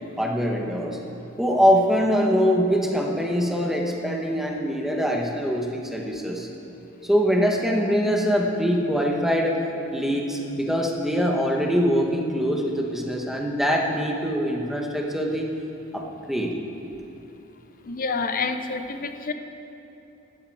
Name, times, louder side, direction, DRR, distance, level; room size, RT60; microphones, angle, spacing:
voice 1, 0.2-1.0 1.4-6.5 7.0-9.6 9.9-15.5 15.9-16.6, equal, ahead, 0 dB, 1.3 m, -23 dB
voice 2, 17.8-19.3, left 4 dB, 45° left, 8 dB, 0.8 m, -28 dB
15.5 x 11.5 x 4.8 m, 2.9 s
head